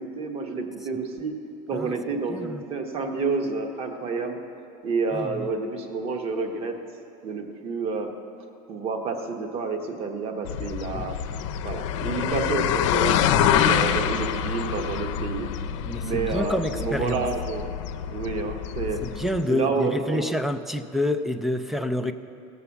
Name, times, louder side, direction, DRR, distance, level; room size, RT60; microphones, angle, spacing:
voice 1, 0.0-1.4 1.7-4.4 4.8-6.8 7.2-8.1 8.7-11.2 11.6-15.5 16.0-17.6 18.1-19.0 19.5-20.2 22.0-22.1, right 4 dB, 40° right, 5 dB, 1.2 m, -29 dB
voice 2, 2.3-2.6 5.1-5.5 10.9-11.0 13.4-13.8 15.8-17.2 19.0-22.1, left 1 dB, ahead, 10 dB, 0.4 m, -28 dB
sound 1, 10.5-19.4, left 9 dB, 90° left, 0.6 m, -26 dB
17.0 x 6.9 x 7.1 m, 2.6 s
supercardioid pair, 140°, 15 cm